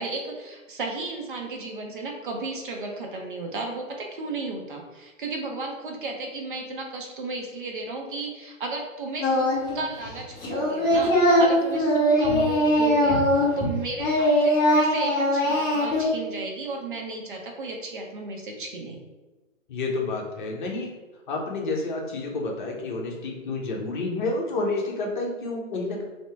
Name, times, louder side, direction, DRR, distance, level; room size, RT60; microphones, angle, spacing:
voice 1, 0.0-19.0, right 3 dB, 40° right, 1 dB, 0.7 m, -34 dB
Singing, 9.2-9.8 10.0-13.7 14.0-16.0, equal, 10° left, 0.6 m, -21 dB
voice 2, 19.7-20.9 21.3-26.0, left 3 dB, 40° left, -1 dB, 0.9 m, -29 dB
3.2 x 2.9 x 4.5 m, 1.2 s
hypercardioid pair, 150°, 40 cm